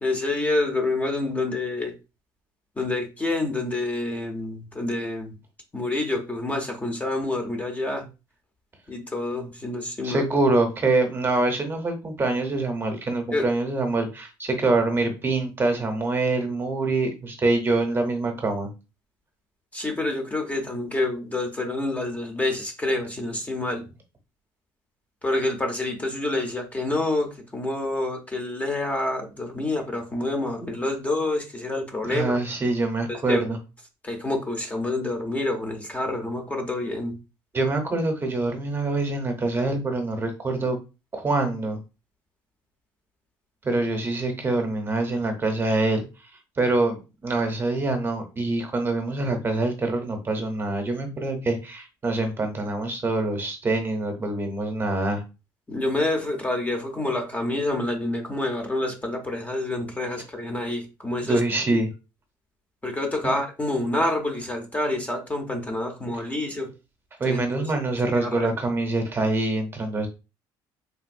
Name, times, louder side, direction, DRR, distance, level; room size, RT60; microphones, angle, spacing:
voice 1, 0.0-1.9 2.8-5.4 5.7-8.1 8.9-10.2 13.3-13.5 19.7-23.8 25.2-32.3 33.1-33.5 34.0-37.1 55.7-61.4 62.8-66.7 67.3-67.7 68.1-68.6, left 2 dB, 15° left, 4 dB, 0.8 m, -27 dB
voice 2, 10.0-18.7 32.1-33.6 37.5-40.8 41.1-41.8 43.6-46.0 46.6-55.2 61.2-61.9 67.2-70.1, right 2 dB, 25° right, 5 dB, 0.8 m, -25 dB
3.4 x 2.5 x 2.6 m, 0.29 s
cardioid pair, 110°, 9 cm